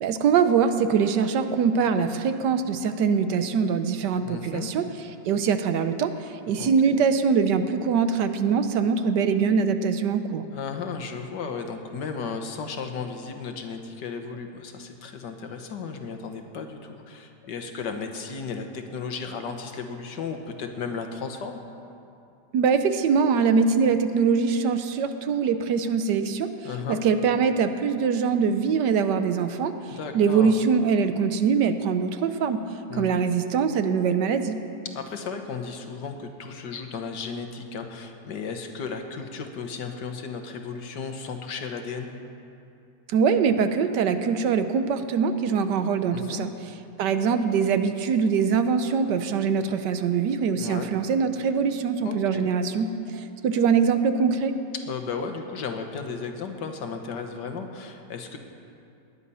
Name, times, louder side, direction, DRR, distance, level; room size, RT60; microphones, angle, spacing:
voice 1, 0.0-4.9 5.3-6.1 6.5-10.4 22.5-26.5 26.9-32.6 33.0-34.6 43.1-46.5 47.0-54.6, right 6 dB, 75° right, 9 dB, 1.3 m, -23 dB
voice 2, 4.3-4.7 6.6-7.0 10.5-21.6 26.6-27.0 29.9-30.6 32.9-33.3 34.9-42.1 46.1-46.5 50.6-51.0 52.0-52.6 54.7-58.4, left 5 dB, 70° left, 5 dB, 1.7 m, -34 dB
18.5 x 11.0 x 5.6 m, 2.6 s
omnidirectional pair, 1.9 m